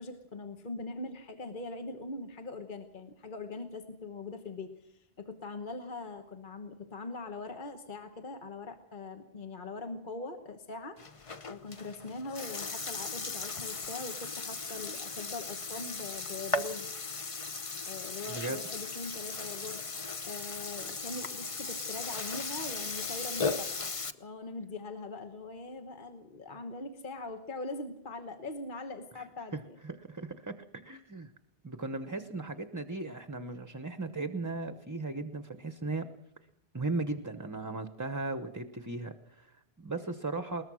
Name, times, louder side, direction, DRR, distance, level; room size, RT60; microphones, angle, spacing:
voice 1, 0.0-11.0 11.5-16.9 17.8-23.9 24.2-29.8, left 3 dB, 55° left, 6 dB, 1.4 m, -42 dB
Burping eructation, 11.0-24.1, left 4 dB, 35° left, 0.9 m, -37 dB
voice 2, 18.3-18.6 29.1-29.2 29.5-31.3 31.6-36.1 36.7-40.6, right 3 dB, 20° right, 10 dB, 0.9 m, -37 dB
21.0 x 19.5 x 6.3 m, 0.79 s
omnidirectional pair, 1.0 m